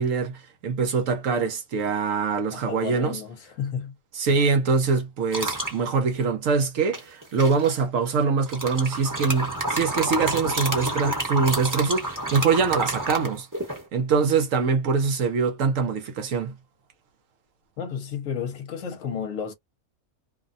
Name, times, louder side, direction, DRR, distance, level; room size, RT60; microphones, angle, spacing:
voice 1, 0.0-3.2 4.1-13.5 13.9-16.5, right 5 dB, 65° right, 0.9 m, -24 dB
voice 2, 2.5-3.9 17.8-19.5, left 7 dB, 65° left, 1.0 m, -32 dB
sound 1, 5.3-5.8 6.9-7.7 8.5-13.8, right 1 dB, 15° right, 0.8 m, -29 dB
2.6 x 2.2 x 2.5 m
omnidirectional pair, 1.6 m